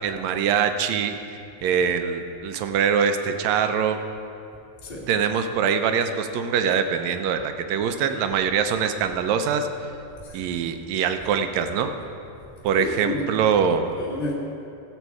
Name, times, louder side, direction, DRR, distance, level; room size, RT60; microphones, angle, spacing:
voice 1, 0.0-1.2 1.6-4.0 5.1-9.7 10.3-11.9 12.6-13.9, right 7 dB, 75° right, 7 dB, 1.7 m, -23 dB
voice 2, 10.2-10.6 12.8-13.2 13.9-14.3, left 2 dB, 20° left, -7 dB, 1.3 m, -31 dB
15.0 x 8.0 x 4.7 m, 2.6 s
omnidirectional pair, 3.6 m